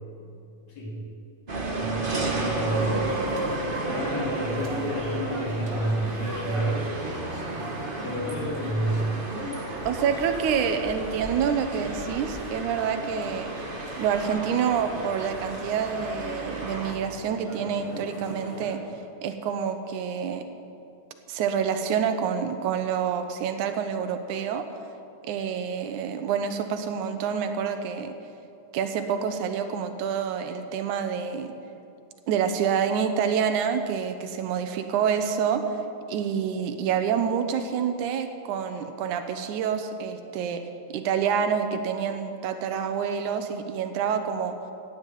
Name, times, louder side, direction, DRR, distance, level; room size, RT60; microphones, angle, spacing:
sound 1, 1.5-16.9, right 2 dB, 55° right, 0.5 m, -33 dB
voice 1, 1.8-3.1 3.9-6.8 7.6-9.1, right 1 dB, 60° left, -4 dB, 4.4 m, -30 dB
sound 2, 2.6-18.8, right 1 dB, 25° right, 1.7 m, -38 dB
voice 2, 9.8-13.5 14.0-18.8 19.2-20.4 21.3-24.7 25.2-28.1 28.7-31.5 32.3-35.6 36.1-40.6 40.9-44.5, right 7 dB, 80° right, 7 dB, 2.4 m, -27 dB
14.0 x 9.1 x 9.1 m, 2.6 s
omnidirectional pair, 3.4 m